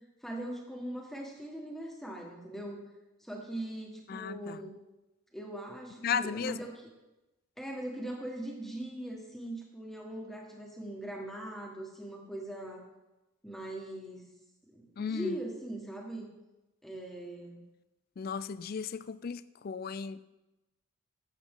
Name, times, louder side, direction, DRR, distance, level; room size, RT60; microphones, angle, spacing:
voice 1, 0.2-2.8 3.2-4.8 5.3-6.9 7.6-12.8 13.4-14.3 14.7-16.3 16.8-17.6, right 1 dB, ahead, 1.6 m, -41 dB
voice 2, 4.1-4.6 6.0-6.6 15.0-15.4 18.2-20.2, left 6 dB, 45° left, 0.3 m, -35 dB
13.0 x 8.1 x 3.8 m
head